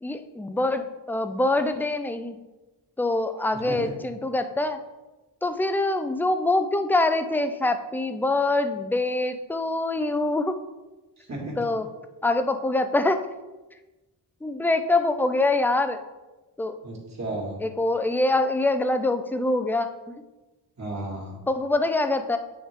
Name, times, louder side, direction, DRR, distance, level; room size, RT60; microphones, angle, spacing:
voice 1, 0.0-2.4 3.0-4.8 5.4-10.6 11.6-11.9 12.2-13.2 14.4-16.0 16.6-16.8 17.6-20.2 21.5-22.4, left 2 dB, 5° left, 9 dB, 0.4 m, -24 dB
voice 2, 11.2-11.6 16.8-17.6 20.8-21.4, right 2 dB, 45° right, -3 dB, 2.4 m, -33 dB
9.6 x 3.5 x 3.6 m, 1.1 s
cardioid pair, 90°, 40 cm